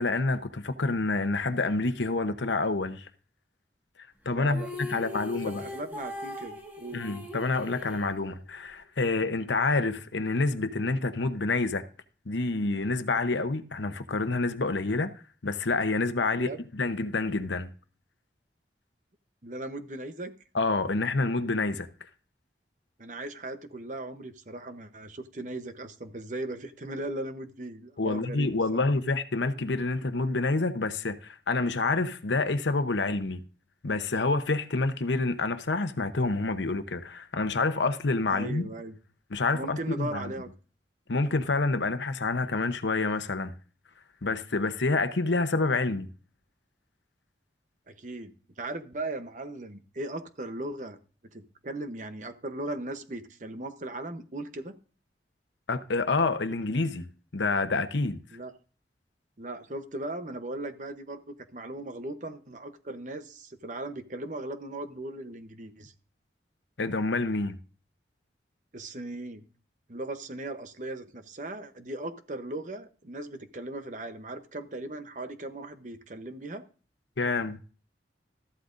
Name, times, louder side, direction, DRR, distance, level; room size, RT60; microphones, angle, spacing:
voice 1, 0.0-3.1 4.2-5.6 6.9-11.8 12.3-15.1 15.4-17.7 20.5-21.9 28.0-33.4 33.8-38.7 39.3-40.2 41.1-43.5 44.2-46.1 55.7-57.1 57.3-58.2 66.8-67.6 77.2-77.6, left 3 dB, 85° left, 0.9 m, -28 dB
voice 2, 4.3-7.0 16.4-16.6 19.4-20.3 23.0-28.9 38.3-39.0 39.5-40.5 47.9-51.0 51.3-54.8 58.3-58.5 59.4-65.9 68.7-69.4 69.9-76.6, right 2 dB, 45° right, 0.9 m, -38 dB
sound 1, 4.5-8.7, left 2 dB, 10° right, 1.6 m, -40 dB
13.5 x 12.0 x 2.6 m
head